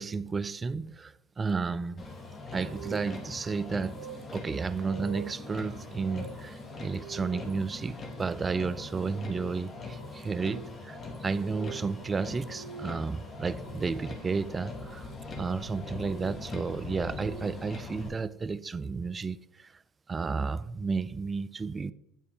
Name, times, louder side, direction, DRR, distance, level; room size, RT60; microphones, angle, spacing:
voice 1, 0.0-2.0 2.5-4.0 4.3-15.1 15.4-19.7 20.1-21.9, right 4 dB, 30° right, 0.3 m, -32 dB
Motor vehicle (road), 2.0-18.1, left 3 dB, 40° left, 1.7 m, -42 dB
sound 1, 2.5-14.4 15.5-17.8, right 8 dB, 70° right, 0.9 m, -48 dB
9.1 x 4.7 x 3.4 m
hypercardioid pair, 75°, 0 cm